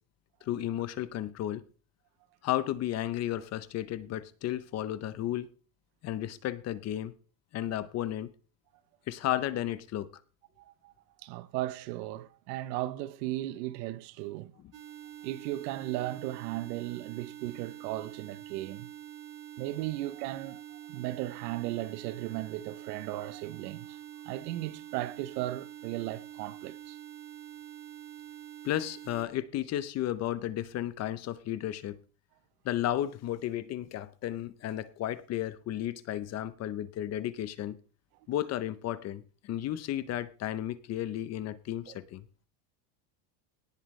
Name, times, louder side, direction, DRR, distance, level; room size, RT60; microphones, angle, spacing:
voice 1, 0.4-1.6 2.4-5.5 6.0-7.1 7.5-8.3 9.1-10.1 28.6-32.0 32.6-37.8 38.3-42.2, left 12 dB, 35° left, 0.7 m, -33 dB
voice 2, 10.6-10.9 11.2-14.5 15.2-18.9 19.6-24.0 24.3-27.0 41.9-42.0, right 16 dB, 90° right, 0.9 m, -36 dB
sound 1, 14.7-29.3, right 11 dB, 30° right, 1.4 m, -46 dB
18.0 x 7.7 x 3.2 m
cardioid pair, 160°, 48 cm